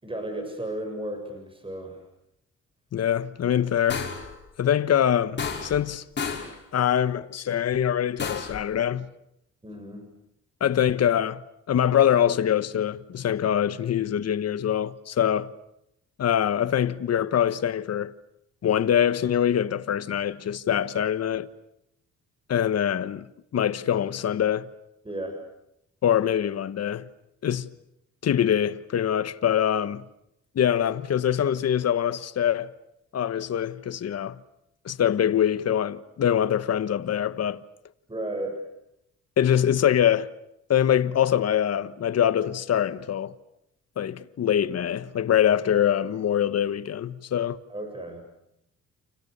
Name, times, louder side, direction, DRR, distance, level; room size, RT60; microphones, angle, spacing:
voice 1, 0.0-2.0 9.6-10.1 25.0-25.4 38.1-38.6 47.7-48.3, right 1 dB, 15° right, 7.6 m, -34 dB
voice 2, 2.9-4.1 4.6-6.0 6.7-9.1 10.6-11.4 11.7-15.5 16.2-18.1 18.6-21.5 22.5-23.3 23.5-24.7 26.0-27.1 27.4-27.7 28.2-30.0 30.5-32.7 33.1-34.4 34.8-37.6 39.4-40.3 40.7-43.3 44.0-47.6, left 9 dB, 55° left, 1.3 m, -24 dB
sound 1, 3.9-4.3 5.4-5.9 6.2-6.6 8.2-8.6, left 5 dB, 35° left, 6.1 m, -31 dB
30.0 x 28.5 x 6.9 m
cardioid pair, 90°, 30 cm